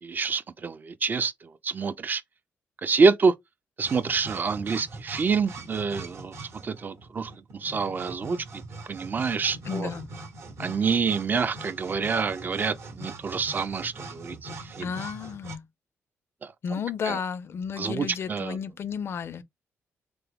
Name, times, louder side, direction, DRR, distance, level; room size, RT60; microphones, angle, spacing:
voice 1, 0.0-2.2 2.8-3.3 3.8-8.6 8.9-9.9 10.6-14.9 16.4-16.5 17.0-17.2 17.8-18.6, right 5 dB, 40° right, 0.4 m, -27 dB
sound 1, 3.8-15.6, right 2 dB, 60° right, 0.8 m, -42 dB
voice 2, 9.7-10.1 14.8-15.6 16.6-19.4, left 6 dB, 50° left, 0.4 m, -32 dB
3.4 x 2.0 x 3.3 m
cardioid pair, 90°, 5 cm